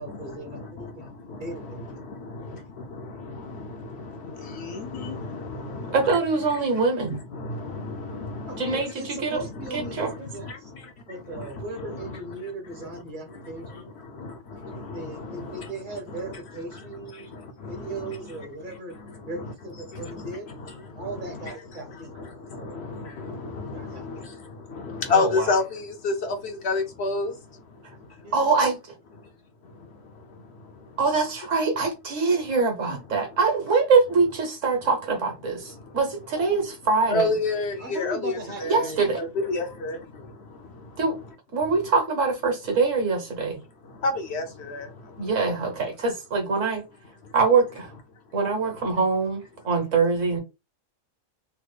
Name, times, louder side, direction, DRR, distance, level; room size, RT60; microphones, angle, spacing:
voice 1, 0.0-1.1 1.4-1.9 8.5-10.5 11.1-13.9 14.9-17.3 17.7-18.9 19.3-20.5 21.0-22.1 22.6-22.9 23.7-24.0 28.2-28.5 37.8-39.1, right 2 dB, 45° right, 0.8 m, -38 dB
voice 2, 1.3-1.7 2.3-2.4 3.3-3.7 4.4-6.1 7.1-8.8 9.4-10.0 10.4-10.6 11.3-11.5 11.8-12.2 14.2-14.3 14.6-15.7 17.7-18.1 20.0-20.2 21.1-21.6 22.2-22.3 22.6-24.2 24.7-27.3 32.9-33.0 36.4-36.5 37.1-38.9 39.2-40.0 44.0-44.9, left 3 dB, 65° left, 0.7 m, -30 dB
voice 3, 5.9-7.2 8.6-9.4 9.7-10.3 15.3-15.4 25.1-25.5 28.3-28.8 31.0-37.3 38.6-39.2 41.0-41.2 41.5-43.6 45.2-46.8 47.3-47.9 48.3-50.4, right 4 dB, 70° right, 1.4 m, -24 dB
3.4 x 2.0 x 3.2 m
omnidirectional pair, 1.4 m